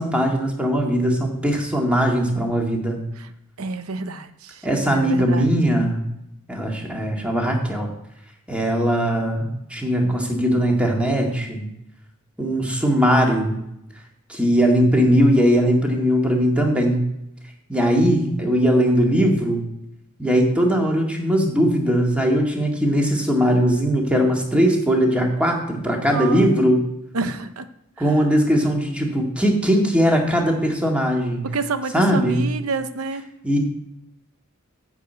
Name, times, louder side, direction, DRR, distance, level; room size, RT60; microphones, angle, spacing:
voice 1, 0.0-3.0 4.6-6.0 6.5-7.9 8.5-11.7 12.4-13.6 14.3-17.0 17.7-19.6 20.2-26.8 28.0-31.4 31.9-32.4 33.4-33.6, equal, 5° right, 0 dB, 1.8 m, -20 dB
voice 2, 3.6-4.3 4.9-5.5 26.1-26.5 27.1-27.7 31.4-33.2, right 4 dB, 85° right, 11 dB, 0.8 m, -28 dB
10.0 x 4.8 x 8.1 m, 0.82 s
head